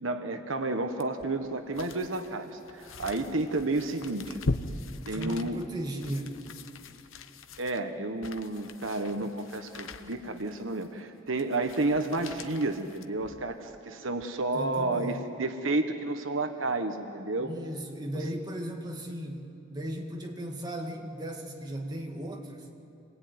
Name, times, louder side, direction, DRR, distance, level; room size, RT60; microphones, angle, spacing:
voice 1, 0.0-4.4 5.1-5.6 7.6-17.5, right 2 dB, 70° right, 7 dB, 1.3 m, -31 dB
sound 1, 1.0-13.6 14.1-14.2, left 3 dB, 70° left, 1.1 m, -41 dB
voice 2, 5.1-6.4 14.5-15.2 17.4-22.7, right 1 dB, 20° right, 2 dB, 2.0 m, -36 dB
26.5 x 20.0 x 9.5 m, 2.6 s
head